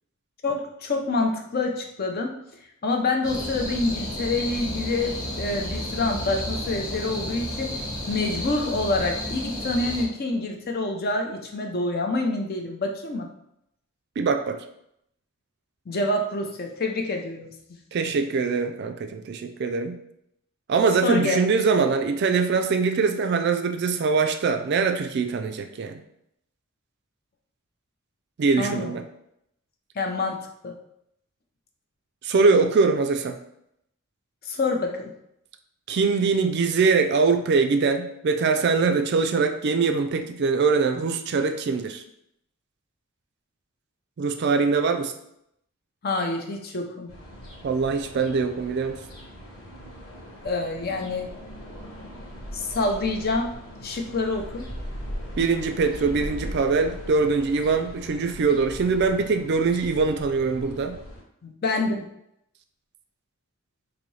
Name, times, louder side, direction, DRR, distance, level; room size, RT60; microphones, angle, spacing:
voice 1, 0.4-2.4 2.8-7.7 8.1-13.3 15.9-17.5 21.0-21.4 28.6-29.0 29.9-30.7 34.4-35.1 46.0-47.1 50.4-51.3 52.5-53.5 53.8-54.7 61.4-62.1, left 2 dB, 45° left, 3 dB, 0.5 m, -27 dB
sound 1, 3.2-10.0, left 1 dB, 15° left, 1.0 m, -32 dB
voice 2, 14.2-14.6 17.9-20.0 20.7-26.0 28.4-29.0 32.2-33.4 35.9-42.0 44.2-45.1 47.6-49.0 55.4-61.0, right 4 dB, 50° right, 6 dB, 0.3 m, -23 dB
sound 2, 47.1-61.2, equal, 60° left, 1.2 m, -40 dB
4.1 x 2.7 x 3.1 m, 0.76 s
head